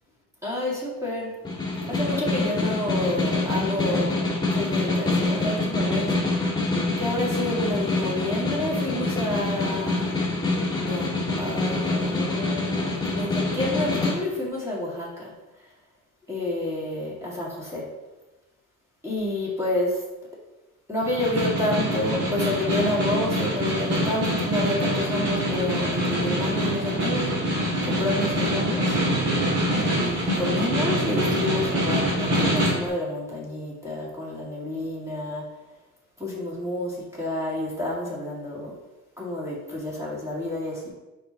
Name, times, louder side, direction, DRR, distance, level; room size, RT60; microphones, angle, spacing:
voice 1, 0.4-1.4 1.9-6.5 7.0-10.2 10.5-15.3 16.3-17.9 19.0-20.0 20.9-29.0 29.7-35.5 36.2-38.8 39.2-40.9, left 1 dB, 10° right, -6 dB, 2.3 m, -29 dB
Snare drum, 1.4-14.2, left 2 dB, 15° left, 1.7 m, -26 dB
Snare drum 2, 21.0-32.9, equal, 55° right, 2.3 m, -25 dB
5.8 x 5.0 x 4.2 m, 1.1 s
cardioid pair, 90°, 30 cm